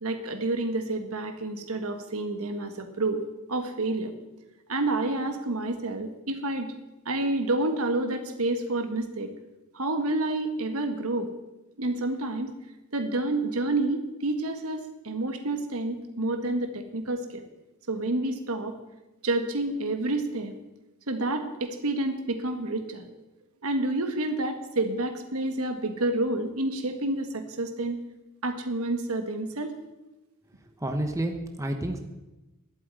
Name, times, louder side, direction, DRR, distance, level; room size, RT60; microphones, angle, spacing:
voice 1, 0.0-4.1 4.7-6.7 7.0-9.3 9.7-11.3 11.8-12.5 12.9-17.4 17.9-18.7 19.2-20.5 21.1-23.0 23.6-28.0 28.4-29.7, right 2 dB, 65° right, 7 dB, 1.6 m, -29 dB
voice 2, 30.8-32.0, right 1 dB, 15° right, 4 dB, 1.1 m, -29 dB
11.5 x 8.5 x 9.1 m, 1.0 s
head